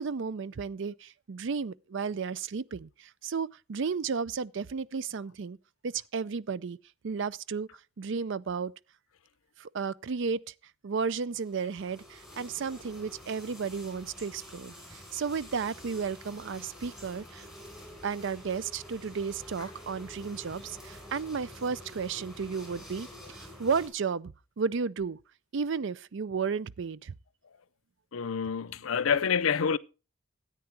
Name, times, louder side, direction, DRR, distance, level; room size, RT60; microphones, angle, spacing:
voice 1, 0.0-5.6 5.8-6.8 7.0-7.7 8.0-8.7 9.6-10.5 10.8-17.5 18.0-25.2 25.5-27.1, right 5 dB, 60° right, 0.5 m, -33 dB
sound 1, 11.3-23.9, left 1 dB, ahead, 4.4 m, -48 dB
voice 2, 28.1-29.8, left 6 dB, 80° left, 0.5 m, -27 dB
13.5 x 9.0 x 4.6 m
head